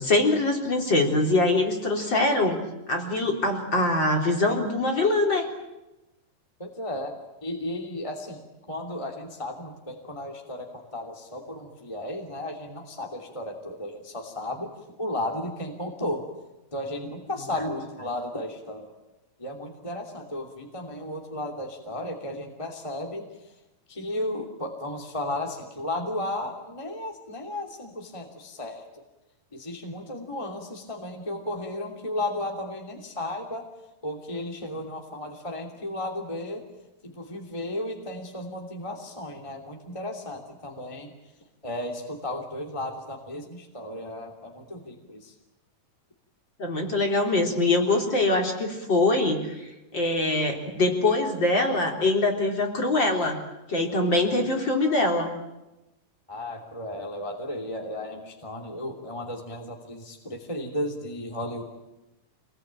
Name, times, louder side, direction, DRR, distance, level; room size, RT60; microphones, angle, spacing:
voice 1, 0.0-2.6 2.9-5.5 46.6-49.5 49.9-53.4 53.7-55.3, left 2 dB, 35° left, 1 dB, 4.1 m, -23 dB
voice 2, 6.6-7.1 7.4-8.4 8.7-14.7 15.0-16.3 16.7-18.9 19.4-23.3 23.9-28.8 29.5-33.7 34.0-36.6 37.0-41.1 41.6-45.3 56.3-61.6, left 1 dB, 10° left, 1 dB, 2.5 m, -34 dB
27.5 x 20.5 x 8.9 m, 1.0 s
omnidirectional pair, 3.8 m